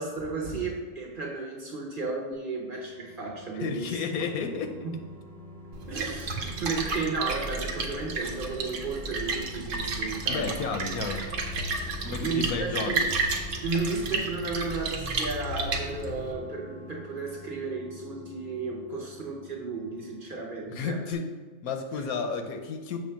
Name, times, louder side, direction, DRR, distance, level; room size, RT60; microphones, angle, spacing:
voice 1, 0.0-4.0 4.8-4.9 5.9-10.5 11.8-13.0 13.6-21.0, right 3 dB, 40° right, -1 dB, 1.0 m, -33 dB
sound 1, 2.5-20.8 21.1-21.2, equal, 5° left, 0.4 m, -47 dB
voice 2, 3.5-4.8 10.3-11.3 12.0-13.1 20.6-21.3 21.6-23.0, left 5 dB, 90° left, 6 dB, 1.2 m, -32 dB
Splash splatter, 5.7-16.3, right 3 dB, 65° right, 1.1 m, -32 dB
6.8 x 3.3 x 5.7 m, 1.4 s
omnidirectional pair, 1.5 m